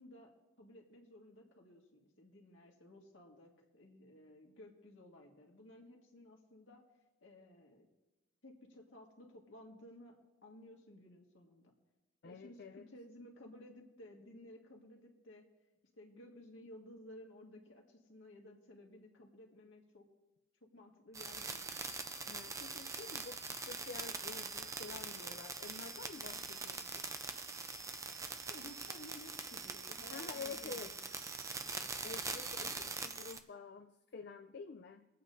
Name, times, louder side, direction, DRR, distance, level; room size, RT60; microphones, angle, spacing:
voice 1, 0.0-6.8 7.2-7.9 8.4-10.2 10.4-11.7 12.2-15.4 16.0-20.1 20.7-21.9 28.3-31.1 32.7-32.9, left 1 dB, 75° left, 0 dB, 1.9 m, -56 dB
voice 2, 12.2-12.9 22.3-27.0 30.1-30.9 32.0-35.1, left 5 dB, 55° left, 5 dB, 0.5 m, -49 dB
sound 1, 21.1-33.4, right 4 dB, 15° right, 0.6 m, -43 dB
23.5 x 8.5 x 2.7 m, 1.1 s
head